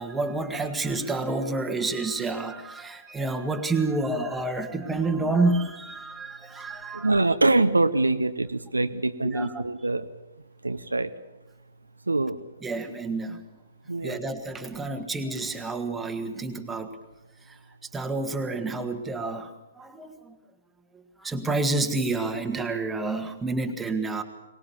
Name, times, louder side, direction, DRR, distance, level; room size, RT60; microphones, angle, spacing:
voice 1, 0.0-7.1 9.2-9.5 12.6-13.4 14.0-16.9 17.5-17.6 17.9-20.4 21.2-24.2, right 3 dB, 5° right, 5 dB, 1.8 m, -29 dB
voice 2, 6.9-10.1 10.6-11.1 12.1-12.4 13.9-14.2, right 2 dB, 75° right, 11 dB, 0.9 m, -24 dB
23.5 x 20.0 x 7.1 m, 1.1 s
figure-of-eight pair, 120°, 0 cm